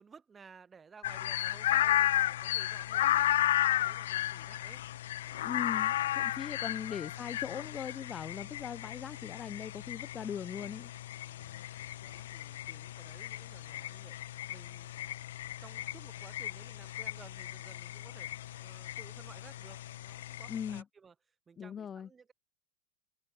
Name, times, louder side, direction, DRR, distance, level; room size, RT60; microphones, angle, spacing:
voice 1, 0.0-3.3 3.7-4.8 5.2-7.2 8.3-8.5 11.2-11.7 12.0-15.3 15.6-21.2 21.5-22.3, right 5 dB, 15° right, 3.7 m, -57 dB
sound 1, 1.0-20.8, left 13 dB, 60° left, 0.8 m, -34 dB
voice 2, 5.4-10.9 20.5-20.8 21.6-22.1, left 7 dB, 20° left, 0.4 m, -40 dB
figure-of-eight pair, 90°, 0 cm